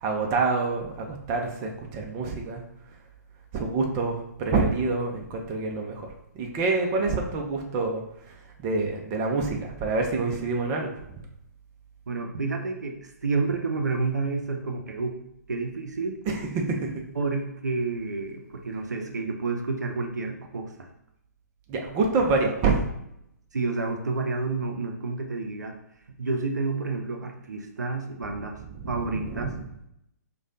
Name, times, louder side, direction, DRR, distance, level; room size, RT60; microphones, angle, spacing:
voice 1, 0.0-2.6 3.5-6.1 6.3-8.0 8.6-11.0 16.3-16.9 21.7-22.9 28.7-29.5, right 3 dB, 25° right, 1 dB, 0.5 m, -27 dB
voice 2, 12.1-15.2 15.5-16.2 17.2-20.9 23.5-25.8 26.2-28.6 28.9-29.5, right 3 dB, 75° right, 4 dB, 0.5 m, -29 dB
4.8 x 2.2 x 2.7 m, 0.78 s
figure-of-eight pair, 130°, 9 cm